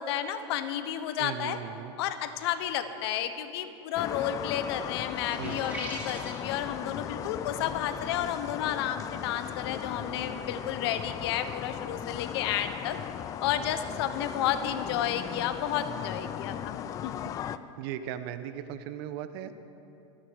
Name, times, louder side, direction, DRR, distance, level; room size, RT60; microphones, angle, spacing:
voice 1, 0.0-1.6 2.0-13.0 13.4-17.3, left 10 dB, 60° left, 10 dB, 1.1 m, -32 dB
voice 2, 1.2-1.9 5.4-5.7 17.8-19.5, right 10 dB, 55° right, 12 dB, 0.8 m, -37 dB
sound 1, 4.0-17.6, left 10 dB, 20° left, 0.3 m, -37 dB
sound 2, 5.1-6.5, right 1 dB, 10° right, 2.7 m, -40 dB
25.0 x 10.0 x 4.7 m, 2.9 s
supercardioid pair, 150°, 15 cm